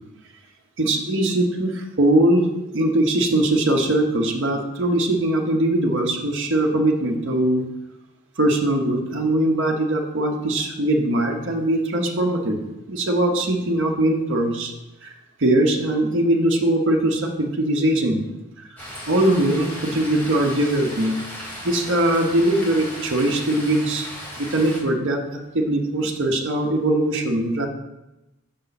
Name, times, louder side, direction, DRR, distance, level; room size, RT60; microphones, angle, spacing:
voice 1, 0.8-2.5 2.7-7.6 8.4-14.7 15.0-18.3 19.1-21.2 21.6-24.1 24.4-27.7, right 1 dB, 60° right, 1 dB, 0.9 m, -21 dB
sound 1, 18.8-24.8, equal, 10° left, 1.7 m, -36 dB
6.6 x 5.4 x 4.0 m, 0.95 s
head